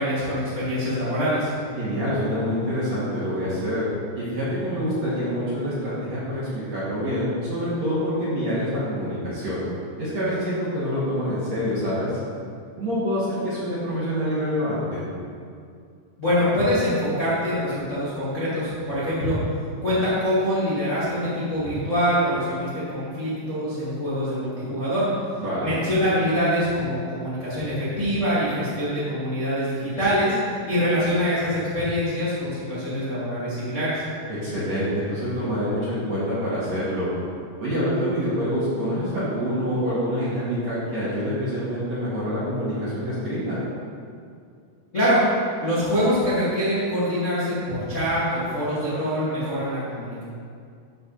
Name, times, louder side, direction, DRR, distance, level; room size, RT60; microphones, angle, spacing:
voice 1, 0.0-1.5 16.2-19.4 19.8-25.1 25.6-30.3 30.7-34.0 44.9-45.2 45.6-50.2, equal, 30° left, -12 dB, 1.4 m, -24 dB
voice 2, 1.8-3.8 4.2-9.6 10.0-12.1 12.8-15.0 25.4-25.7 34.3-37.1 37.6-43.6, equal, 45° right, -11 dB, 2.6 m, -26 dB
13.5 x 5.2 x 4.2 m, 2.3 s
omnidirectional pair, 5.5 m